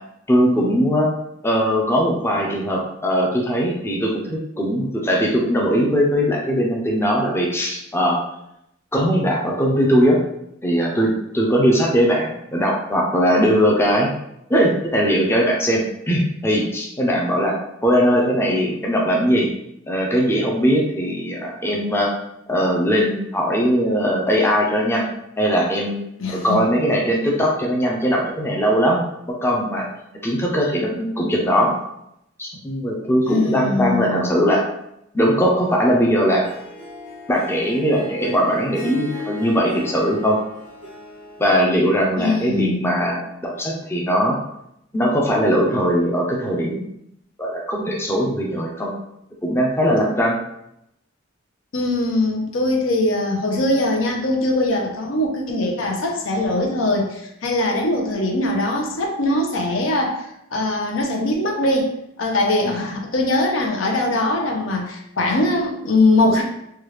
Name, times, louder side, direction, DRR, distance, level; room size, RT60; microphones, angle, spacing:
voice 1, 0.3-1.1 1.4-8.2 8.9-10.2 10.6-14.1 14.5-17.6 17.8-19.5 19.9-22.1 22.5-25.1 25.4-26.0 26.3-29.0 29.4-29.9 30.2-31.7 32.4-34.7 35.1-36.5 37.3-40.4 41.4-44.4 44.9-46.8 47.4-48.9 49.4-50.4 62.6-62.9, equal, 10° left, -2 dB, 0.5 m, -20 dB
voice 2, 26.2-26.6 33.2-34.3 42.2-43.0 51.7-66.4, left 2 dB, 75° left, 1 dB, 0.6 m, -21 dB
Harp, 36.3-41.6, left 3 dB, 40° left, 1.2 m, -37 dB
3.2 x 2.3 x 3.2 m, 0.79 s
head